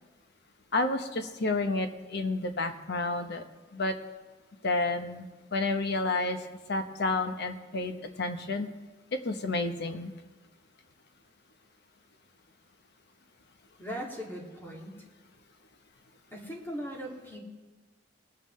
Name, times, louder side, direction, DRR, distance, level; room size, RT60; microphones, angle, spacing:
voice 1, 0.7-3.4 3.7-3.9 4.6-5.3 5.5-6.4 6.7-8.7 9.2-10.1, left 2 dB, 60° left, 7 dB, 1.0 m, -30 dB
voice 2, 13.8-15.0 16.3-17.4, equal, 15° left, -3 dB, 2.5 m, -39 dB
21.5 x 9.0 x 3.3 m, 1.2 s
head